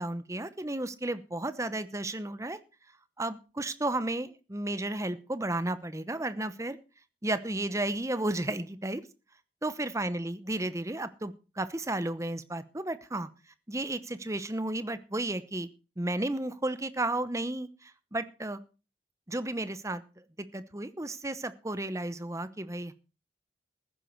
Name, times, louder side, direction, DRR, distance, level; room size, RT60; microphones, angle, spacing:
voice 1, 0.0-2.6 3.2-6.8 7.2-9.0 9.6-13.3 13.7-15.7 16.0-18.6 19.3-20.2 20.5-22.9, right 2 dB, 15° right, 13 dB, 0.9 m, -33 dB
15.0 x 10.5 x 4.6 m, 0.33 s
head